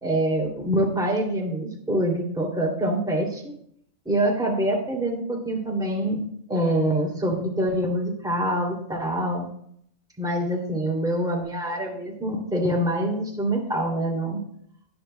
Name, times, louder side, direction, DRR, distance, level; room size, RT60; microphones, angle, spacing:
voice 1, 0.0-3.5 4.0-9.5 10.2-14.4, right 1 dB, 5° right, -2 dB, 2.7 m, -25 dB
18.5 x 11.0 x 2.2 m, 0.68 s
omnidirectional pair, 1.4 m